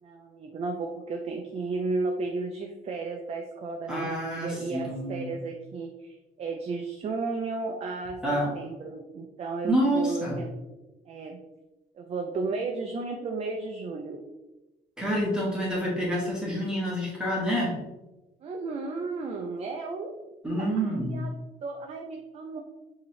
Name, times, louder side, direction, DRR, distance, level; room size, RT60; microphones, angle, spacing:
voice 1, 0.0-10.6 11.1-11.4 11.9-14.2 18.4-20.1 20.5-21.3 21.6-22.6, right 3 dB, 40° right, 3 dB, 0.5 m, -34 dB
voice 2, 3.9-5.3 8.2-8.5 9.6-10.4 15.0-17.8 20.4-21.2, equal, 5° right, -5 dB, 1.3 m, -28 dB
5.1 x 2.9 x 3.1 m, 1.1 s
cardioid pair, 110°, 17 cm